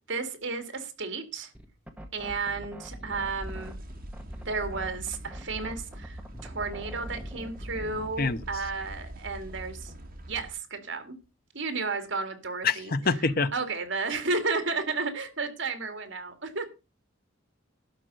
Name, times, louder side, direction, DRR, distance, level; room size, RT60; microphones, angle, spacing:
voice 1, 0.1-1.5 2.1-3.8 4.5-9.9 10.3-11.1 11.5-12.9 13.5-16.7, right 4 dB, 65° right, 2.3 m, -33 dB
sound 1, 1.5-8.2, equal, 5° right, 1.3 m, -43 dB
sound 2, 3.1-10.5, right 1 dB, 45° right, 2.8 m, -43 dB
voice 2, 12.6-13.5, left 4 dB, 45° left, 0.9 m, -25 dB
12.0 x 5.2 x 8.0 m
head